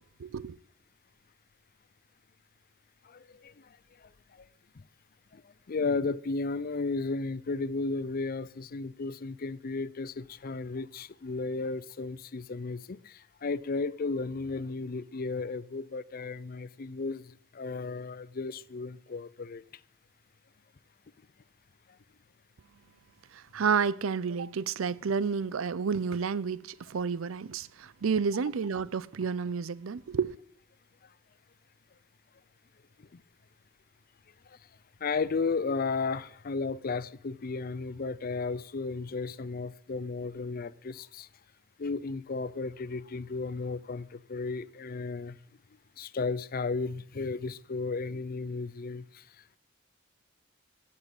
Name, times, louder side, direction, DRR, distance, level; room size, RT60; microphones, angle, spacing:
voice 1, 0.2-0.6 23.3-30.4, right 6 dB, 80° right, 0.5 m, -30 dB
voice 2, 3.1-3.7 5.3-5.4 5.7-19.6 33.1-33.2 35.0-41.3 41.8-45.4 46.0-49.2, left 4 dB, 45° left, 0.5 m, -34 dB
14.0 x 7.4 x 8.0 m
head